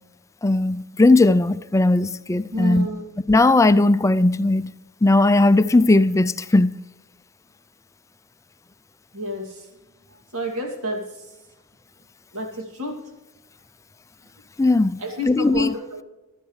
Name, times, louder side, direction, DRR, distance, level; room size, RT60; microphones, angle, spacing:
voice 1, 0.4-2.9 3.3-4.7 5.0-6.7 14.6-15.0 15.3-15.7, left 2 dB, 15° left, 0.3 m, -17 dB
voice 2, 2.5-3.1 9.1-9.7 10.1-11.3 12.3-13.0 15.0-16.0, equal, 75° right, 2.6 m, -30 dB
22.0 x 12.0 x 3.2 m
head